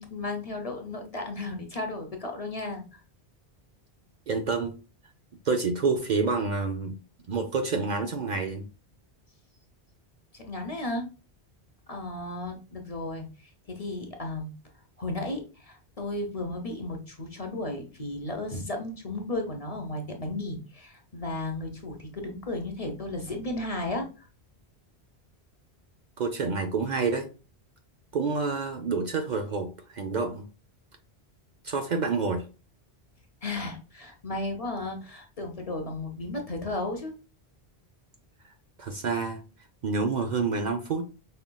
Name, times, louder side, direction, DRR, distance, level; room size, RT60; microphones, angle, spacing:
voice 1, 0.0-3.0 10.3-11.1 11.9-14.5 15.0-24.1 33.4-37.1, left 2 dB, 40° left, 0.8 m, -34 dB
voice 2, 4.3-4.7 5.4-7.0 7.3-8.7 26.2-27.3 28.1-30.5 31.6-32.5 38.8-39.4 39.8-41.0, right 4 dB, 55° right, 0.6 m, -28 dB
5.6 x 3.6 x 2.2 m
omnidirectional pair, 1.1 m